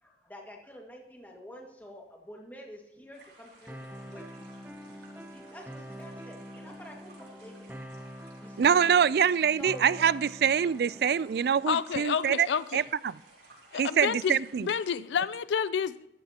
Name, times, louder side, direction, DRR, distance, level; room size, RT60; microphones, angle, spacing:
voice 1, 0.0-4.5 5.2-7.8 8.2-9.1 9.6-10.5, equal, 10° left, 0 dB, 1.8 m, -48 dB
sound 1, 3.1-14.9, right 2 dB, 90° right, 5.0 m, -57 dB
sound 2, 3.7-11.7, equal, 10° right, 0.6 m, -45 dB
voice 2, 8.6-12.5 12.7-13.2 13.7-14.7, right 7 dB, 60° right, 20 dB, 0.3 m, -25 dB
voice 3, 11.7-12.8 13.7-16.1, left 7 dB, 85° left, 16 dB, 0.4 m, -29 dB
13.5 x 13.5 x 2.9 m, 0.83 s
head